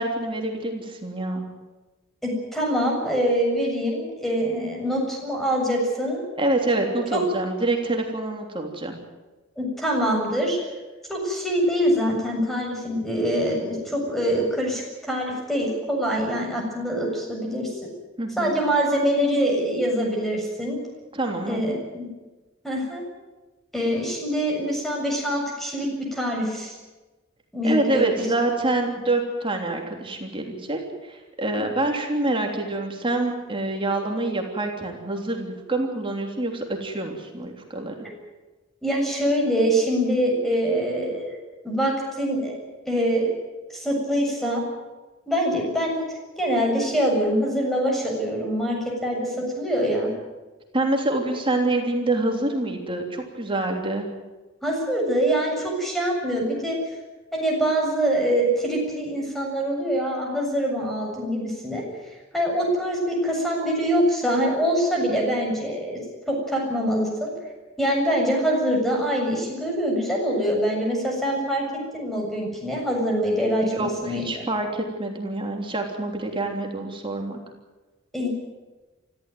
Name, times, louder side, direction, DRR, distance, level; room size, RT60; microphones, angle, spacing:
voice 1, 0.0-1.5 6.4-9.0 18.2-18.5 21.1-21.6 27.6-30.8 31.1-37.9 50.7-54.1 73.6-77.4, right 2 dB, 25° right, 2 dB, 3.3 m, -26 dB
voice 2, 2.2-6.2 7.1-7.2 9.6-10.6 11.1-17.9 18.4-20.8 21.5-22.1 22.6-23.0 23.7-26.8 27.5-28.3 38.0-38.1 38.8-42.6 42.9-43.3 43.7-44.6 45.3-46.0 46.4-50.1 54.6-56.8 57.3-61.8 62.3-66.0 66.3-67.3 67.8-71.6 71.9-74.5 78.1-78.3, equal, ahead, -1 dB, 7.5 m, -24 dB
24.5 x 15.5 x 9.4 m, 1.2 s
head